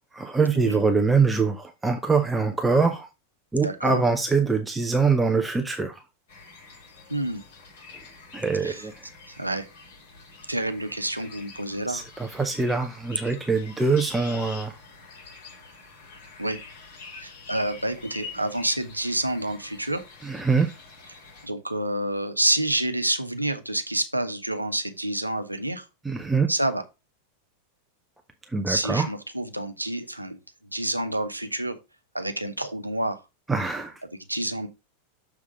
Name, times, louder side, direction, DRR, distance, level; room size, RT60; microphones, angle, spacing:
voice 1, 0.1-3.1 3.5-6.0 8.3-9.0 11.9-14.8 20.2-20.7 26.0-26.5 28.5-29.1 33.5-33.9, right 4 dB, 10° right, 0.7 m, -23 dB
voice 2, 3.6-4.0 7.1-7.4 8.6-8.9 9.3-9.7 10.5-12.1 16.4-16.6 17.2-20.0 21.4-25.9 26.5-26.8 28.7-30.4 30.7-31.8 32.1-33.2 34.3-34.7, right 1 dB, 85° right, 0.8 m, -28 dB
sound 1, 6.3-21.5, left 4 dB, 55° left, 4.2 m, -46 dB
6.5 x 3.6 x 5.0 m
figure-of-eight pair, 90°, 0 cm